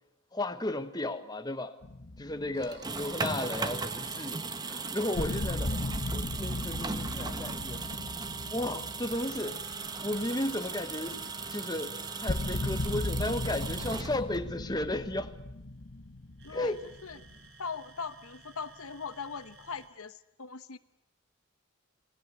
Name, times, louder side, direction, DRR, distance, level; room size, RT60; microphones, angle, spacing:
voice 1, 0.3-1.7 2.2-7.8 8.5-9.6 10.0-11.2 11.5-11.9 12.2-15.3 16.5-16.8, left 1 dB, 20° left, 1.2 m, -34 dB
sound 1, 1.8-3.2 3.5-3.6 4.6-4.7 5.1-10.5 10.8-10.9 11.4-11.5 12.3-17.4, left 1 dB, 55° left, 1.3 m, -36 dB
sound 2, 2.5-6.0 7.1-14.5 16.4-19.9, right 2 dB, 50° right, 4.2 m, -53 dB
sound 3, 2.6-14.5, right 4 dB, 20° right, 1.0 m, -38 dB
voice 2, 16.4-17.3 17.6-20.8, left 5 dB, 85° left, 1.1 m, -40 dB
28.0 x 20.0 x 8.2 m
head